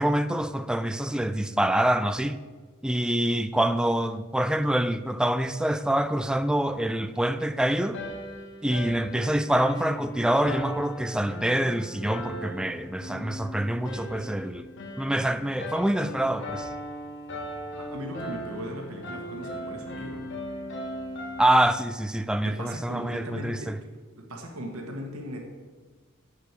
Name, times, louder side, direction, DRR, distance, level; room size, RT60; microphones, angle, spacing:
voice 1, 0.0-2.4 2.8-8.0 8.6-14.7 15.0-16.7 21.4-23.8, right 1 dB, 5° right, 0.3 m, -26 dB
sound 1, 7.9-21.6, equal, 55° left, 1.6 m, -38 dB
voice 2, 17.8-20.2 22.4-23.7 24.2-25.4, equal, 85° right, 1.5 m, -38 dB
8.0 x 6.4 x 7.5 m
head